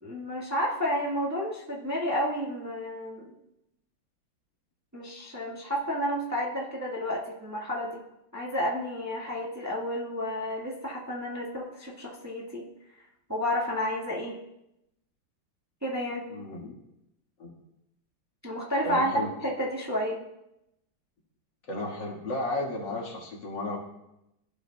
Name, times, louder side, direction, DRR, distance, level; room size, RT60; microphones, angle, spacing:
voice 1, 0.0-3.3 4.9-7.9 8.3-12.7 13.3-14.4 15.8-16.3 18.4-20.2, equal, 10° right, -4 dB, 1.3 m, -31 dB
voice 2, 16.3-16.7 17.4-17.5 18.8-19.3 21.7-23.8, left 2 dB, 60° left, -1 dB, 2.3 m, -33 dB
15.5 x 7.8 x 2.2 m, 0.86 s
omnidirectional pair, 2.2 m